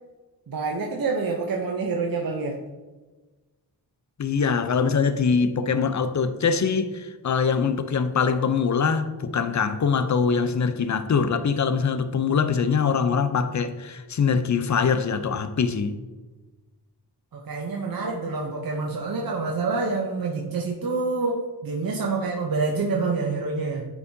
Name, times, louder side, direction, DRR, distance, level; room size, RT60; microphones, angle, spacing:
voice 1, 0.5-2.6 17.3-23.9, right 4 dB, 55° right, 0.8 m, -27 dB
voice 2, 4.2-16.0, left 6 dB, 45° left, 0.6 m, -23 dB
8.4 x 4.8 x 2.7 m
cardioid pair, 55°, 41 cm